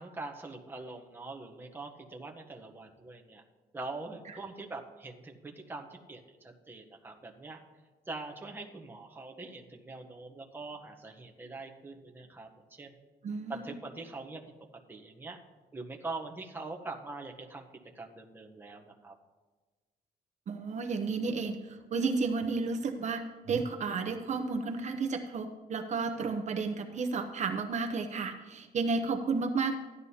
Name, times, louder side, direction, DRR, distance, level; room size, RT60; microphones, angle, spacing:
voice 1, 0.0-3.4 3.7-7.6 8.1-12.9 13.5-14.4 14.9-15.4 15.7-17.6 17.9-19.1, right 3 dB, 15° right, 2 dB, 0.8 m, -43 dB
voice 2, 13.2-13.8 20.5-29.7, right 4 dB, 45° right, 5 dB, 0.7 m, -32 dB
15.0 x 11.0 x 2.8 m, 1.3 s
cardioid pair, 140°, 17 cm